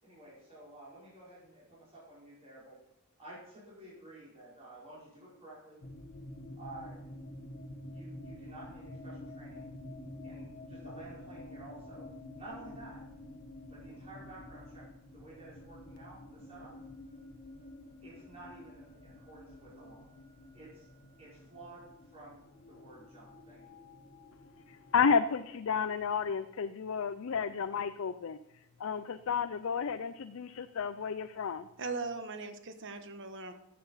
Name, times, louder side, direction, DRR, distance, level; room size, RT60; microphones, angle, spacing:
voice 1, 0.0-2.8 3.2-5.8 6.6-7.0 7.7-9.7 10.2-13.0 13.7-14.9 15.1-16.8 18.0-20.1 20.5-20.9 21.2-23.8, right 2 dB, 30° right, -8 dB, 4.9 m, -52 dB
sound 1, 5.8-25.7, left 1 dB, 45° left, 1.1 m, -49 dB
voice 2, 24.7-28.4 28.8-31.7, left 6 dB, 65° left, 11 dB, 0.4 m, -31 dB
voice 3, 31.8-33.5, right 3 dB, 60° right, 8 dB, 1.2 m, -39 dB
13.0 x 7.5 x 5.6 m, 0.86 s
head